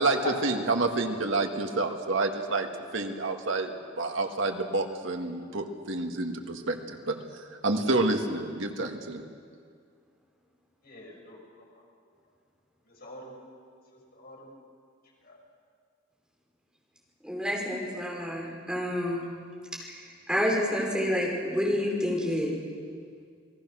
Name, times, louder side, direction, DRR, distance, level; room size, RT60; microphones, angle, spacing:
voice 1, 0.0-2.7 2.9-7.2 7.6-9.2, right 2 dB, 85° right, 4 dB, 1.9 m, -28 dB
voice 2, 10.8-11.6 12.9-13.3 13.9-14.5 15.2-15.4, left 2 dB, 55° left, -1 dB, 5.6 m, -41 dB
voice 3, 17.2-19.2 19.8-22.5, equal, 5° right, -3 dB, 5.0 m, -29 dB
28.5 x 19.0 x 6.4 m, 2.1 s
head